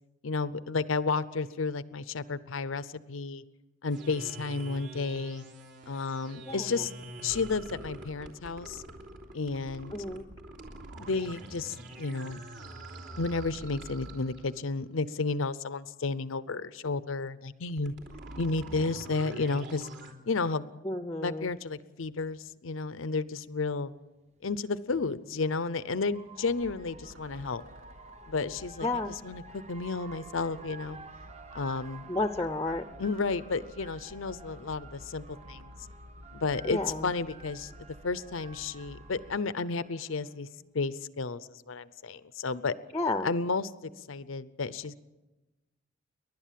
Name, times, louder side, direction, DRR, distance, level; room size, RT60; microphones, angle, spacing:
voice 1, 0.2-3.4 3.8-5.4 5.9-6.9 7.2-8.8 9.3-9.9 11.0-12.4 13.2-17.9 18.4-19.9 20.3-20.7 21.2-23.9 24.4-27.6 28.3-31.0 31.5-32.1 33.0-35.7 36.3-37.7 38.0-40.5 40.7-42.7 43.2-45.0, left 4 dB, 85° left, 15 dB, 0.7 m, -32 dB
sound 1, 3.9-14.7 17.7-20.1, right 1 dB, 60° right, 3.2 m, -45 dB
voice 2, 6.5-6.9 9.9-10.3 20.8-21.5 28.8-29.1 32.1-32.8 36.6-37.1 42.9-43.3, left 2 dB, 15° left, 9 dB, 0.6 m, -31 dB
sound 2, 23.3-23.4 24.8-40.4, right 3 dB, 35° right, 1.0 m, -51 dB
sound 3, 26.6-39.4, left 1 dB, 85° right, 1.4 m, -52 dB
30.0 x 12.0 x 7.5 m, 1.1 s
head